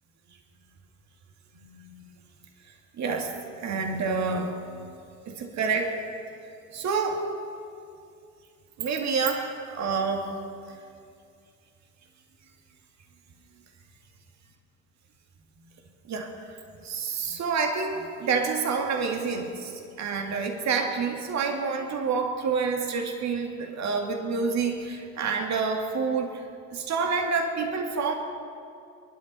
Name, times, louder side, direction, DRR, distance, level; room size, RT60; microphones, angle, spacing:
voice 1, 1.7-2.0 3.0-3.3 3.6-4.5 5.3-5.9 6.7-7.2 8.8-10.3 16.1-16.6 16.8-19.7 20.0-26.4 26.7-28.1, right 5 dB, 45° right, 4 dB, 2.3 m, -28 dB
22.0 x 11.5 x 5.6 m, 2.4 s
figure-of-eight pair, 60°, 39 cm